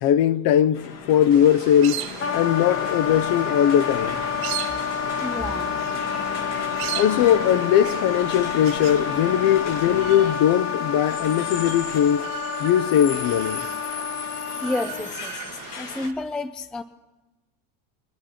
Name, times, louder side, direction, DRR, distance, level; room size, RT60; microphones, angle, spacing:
voice 1, 0.0-2.0 2.3-4.2 6.9-12.3 12.6-13.6, left 10 dB, 45° left, 0.7 m, -20 dB
sound 1, 0.7-16.1, left 6 dB, 85° left, 2.9 m, -36 dB
sound 2, 1.3-16.1, right 15 dB, 50° right, 0.8 m, -38 dB
Wind instrument woodwind instrument, 2.2-15.1, left 7 dB, 25° left, 1.1 m, -29 dB
voice 2, 5.2-5.7 14.6-16.8, left 2 dB, ahead, 0.4 m, -30 dB
26.5 x 10.0 x 4.4 m
supercardioid pair, 110°, 49 cm